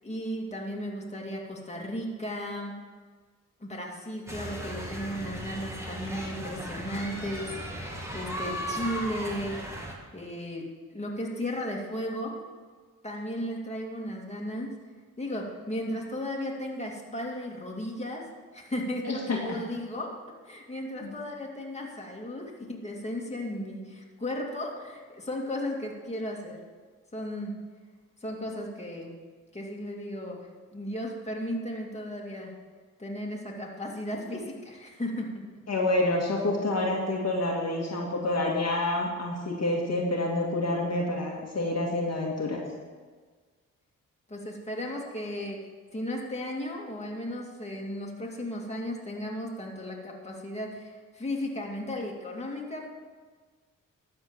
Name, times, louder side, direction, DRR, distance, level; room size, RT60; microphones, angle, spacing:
voice 1, 0.0-2.7 3.6-7.5 8.1-9.6 10.1-10.7 10.9-12.4 13.0-14.8 15.2-18.3 18.5-26.6 27.1-27.5 28.2-29.1 29.5-32.5 33.0-35.4 44.3-45.6 45.9-52.9, left 1 dB, 20° left, -1 dB, 2.3 m, -35 dB
sound 1, 4.3-9.9, right 1 dB, 10° right, 2.5 m, -36 dB
voice 2, 19.1-19.6 21.0-21.1 35.7-42.6, left 2 dB, 45° left, -2 dB, 2.0 m, -28 dB
12.5 x 4.4 x 7.4 m, 1.5 s
supercardioid pair, 50°, 34 cm